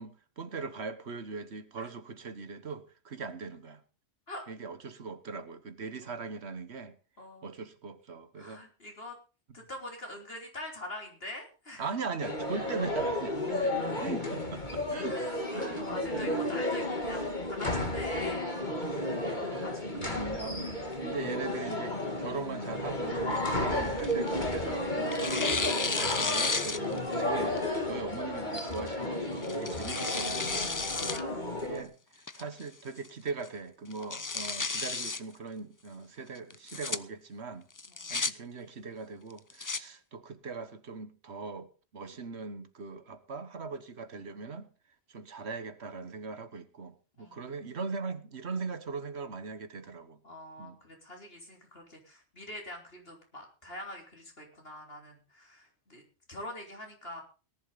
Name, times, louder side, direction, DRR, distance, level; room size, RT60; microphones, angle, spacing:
voice 1, 0.0-3.8 4.5-6.9 7.4-8.6 11.8-13.7 14.0-15.2 15.5-16.5 19.4-30.8 31.6-31.9 32.3-37.7 38.1-44.7 45.1-50.2 50.6-50.8, right 4 dB, 75° right, 1.5 m, -40 dB
voice 2, 7.2-7.5 8.4-9.2 9.5-11.9 13.7-13.8 15.0-18.6 19.6-20.3 23.5-24.0 30.9-31.5 34.0-34.5 37.9-38.3 47.2-47.5 50.2-56.0 56.3-57.2, left 1 dB, 60° left, 4.0 m, -45 dB
sound 1, 12.2-31.8, left 1 dB, 45° left, 2.8 m, -33 dB
Tearing, 23.3-24.6 25.1-27.2 27.6-27.7 28.6-28.9 29.4-31.2 31.6-31.7 32.3-32.7 33.0-33.1 33.4-33.5 33.9-35.2 36.5-37.0 37.8-38.3 39.3-39.8, left 4 dB, 25° left, 0.5 m, -33 dB
18.0 x 11.0 x 4.0 m
omnidirectional pair, 1.1 m